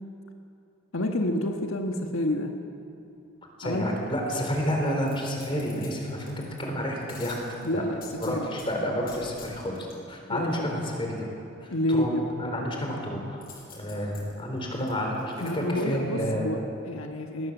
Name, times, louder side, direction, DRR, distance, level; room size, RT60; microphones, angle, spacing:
voice 1, 0.9-2.5 3.6-4.0 7.6-8.5 10.3-10.7 11.7-12.3 15.4-17.5, left 1 dB, 85° left, 3 dB, 1.4 m, -29 dB
voice 2, 3.6-7.4 7.7-7.8 8.2-11.3 11.6-12.1 12.4-13.4 13.7-16.4, equal, 25° left, 1 dB, 3.8 m, -30 dB
sound 1, 5.0-6.6 7.1-8.7 9.1-10.0 13.4-15.5 16.0-16.1, left 5 dB, 45° left, 6.2 m, -48 dB
19.0 x 19.0 x 7.3 m, 2.6 s
head